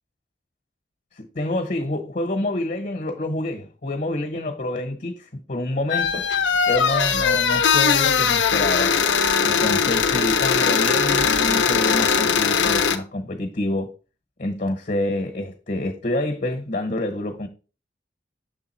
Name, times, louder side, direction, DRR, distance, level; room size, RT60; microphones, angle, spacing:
voice 1, 1.2-6.2 6.7-9.0 9.4-13.9 14.4-17.5, left 1 dB, 50° left, 1.0 m, -27 dB
sound 1, 5.9-13.0, left 6 dB, 90° left, 0.7 m, -20 dB
6.7 x 3.6 x 4.3 m
head